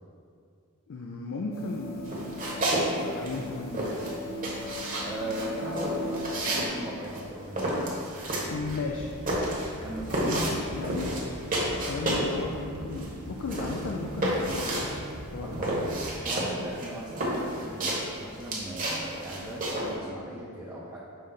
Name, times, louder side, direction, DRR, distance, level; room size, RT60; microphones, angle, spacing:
voice 1, 0.9-2.2 2.9-4.1 8.5-9.1 10.2-11.3 11.8-14.9 15.3-15.9, left 3 dB, 60° left, 0 dB, 0.4 m, -35 dB
sound 1, 1.5-6.7, left 1 dB, 45° left, 0.8 m, -38 dB
sound 2, 2.0-2.9 3.1-12.4 12.7-19.9, right 1 dB, 40° right, 1.2 m, -31 dB
voice 2, 5.0-8.0 9.8-10.9 15.4-15.8 16.2-21.0, right 1 dB, 10° right, -8 dB, 0.7 m, -38 dB
sound 3, 8.4-16.1, right 1 dB, 75° right, 0.7 m, -41 dB
5.6 x 3.3 x 5.3 m, 2.3 s
head